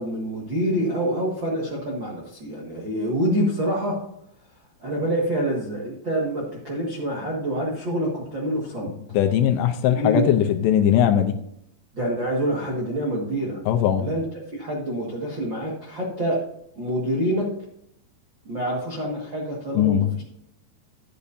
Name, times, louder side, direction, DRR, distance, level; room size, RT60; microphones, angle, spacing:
voice 1, 0.0-4.0 4.8-8.9 9.8-10.3 11.9-13.6 14.0-14.2 14.5-16.4 16.7-17.5 18.4-20.2, right 1 dB, 55° right, -5 dB, 1.3 m, -26 dB
voice 2, 9.1-11.3 13.7-14.1 19.8-20.2, left 10 dB, 80° left, 6 dB, 2.7 m, -20 dB
13.0 x 8.3 x 2.7 m, 0.75 s
omnidirectional pair, 5.2 m